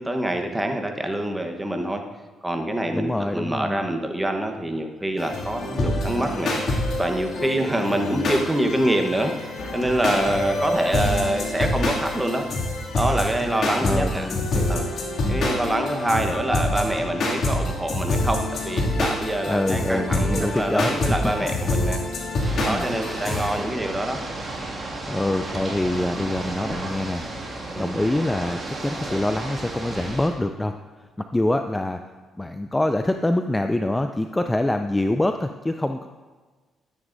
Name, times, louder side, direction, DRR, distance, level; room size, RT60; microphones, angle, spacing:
voice 1, 0.0-2.0 2.4-6.5 7.0-12.5 12.9-14.3 14.7-14.9 15.3-22.0 22.6-24.2 27.7-28.0, right 1 dB, 10° right, 4 dB, 1.1 m, -25 dB
voice 2, 2.9-3.8 13.8-14.8 15.2-15.4 19.5-21.0 22.6-22.9 25.1-27.3 27.8-30.8 31.3-32.0 32.4-36.1, left 1 dB, 10° left, 7 dB, 0.4 m, -25 dB
sound 1, 5.2-23.6, left 1 dB, 60° left, 2.4 m, -26 dB
Ocean / Boat Water vehicle, 22.4-30.3, right 2 dB, 35° right, 2.2 m, -33 dB
12.5 x 9.6 x 2.7 m, 1.3 s
cardioid pair, 90°, 0 cm